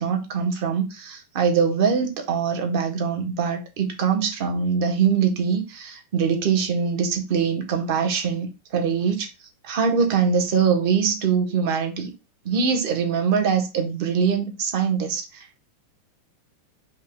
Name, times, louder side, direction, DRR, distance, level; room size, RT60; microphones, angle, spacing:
voice 1, 0.0-9.3 9.6-12.1 12.4-15.7, right 6 dB, 45° right, 1.1 m, -23 dB
5.4 x 2.3 x 3.6 m
supercardioid pair, 170°, 0 cm